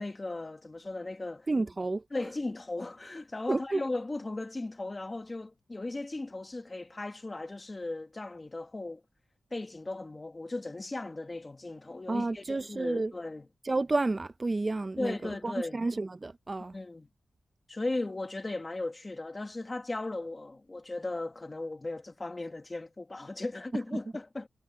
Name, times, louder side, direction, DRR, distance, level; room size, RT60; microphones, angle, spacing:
voice 1, 0.0-1.5 2.1-9.0 9.5-13.4 15.0-15.8 16.7-17.1 17.7-24.5, left 2 dB, 25° left, 1.6 m, -37 dB
voice 2, 1.5-2.0 3.5-3.8 12.1-13.1 13.6-16.7, right 3 dB, 25° right, 0.6 m, -31 dB
wide cardioid pair, 110°, 0 cm